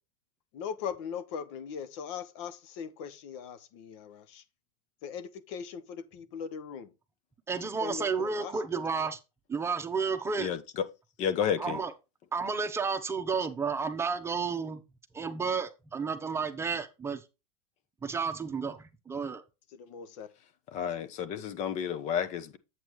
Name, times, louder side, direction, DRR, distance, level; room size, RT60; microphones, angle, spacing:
voice 1, 0.5-4.4 5.0-6.9 7.8-8.5 19.8-20.3, left 7 dB, 65° left, 1.1 m, -40 dB
voice 2, 7.5-9.2 9.5-10.5 11.6-11.9 12.3-14.8 15.1-17.2 18.0-19.4, right 5 dB, 15° right, 1.0 m, -32 dB
voice 3, 11.2-11.8 20.7-22.6, left 8 dB, 45° left, 1.1 m, -31 dB
8.1 x 7.3 x 3.1 m
supercardioid pair, 130°, 17 cm